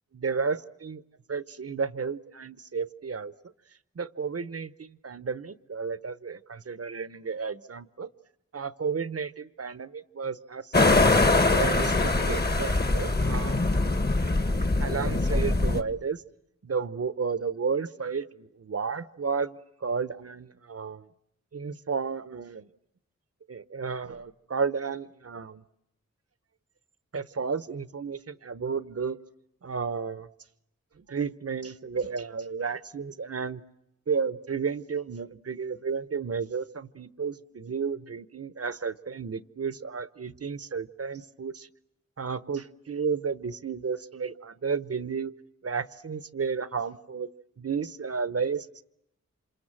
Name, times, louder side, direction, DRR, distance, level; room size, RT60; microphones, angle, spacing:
voice 1, 0.1-1.0 1.3-3.3 4.0-8.1 8.5-10.9 11.5-13.8 14.8-16.2 16.6-21.0 21.5-22.7 23.5-25.6 27.1-29.2 29.6-30.3 31.0-33.6 34.1-41.7 42.2-45.3 45.6-47.3 47.6-48.7, right 5 dB, 55° right, 14 dB, 1.0 m, -32 dB
sound 1, 10.7-15.8, left 2 dB, 35° left, 1.6 m, -23 dB
28.0 x 27.0 x 7.5 m, 0.82 s
wide cardioid pair, 60°, 29 cm